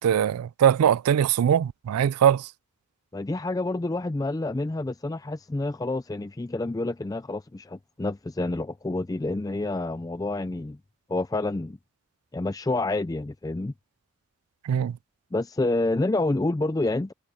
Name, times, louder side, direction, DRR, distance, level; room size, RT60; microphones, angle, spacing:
voice 1, 0.0-2.5 14.7-15.0, right 9 dB, 90° right, 0.3 m, -21 dB
voice 2, 3.1-10.8 11.1-11.8 12.3-13.7 15.3-17.1, left 2 dB, 15° left, 0.3 m, -28 dB
head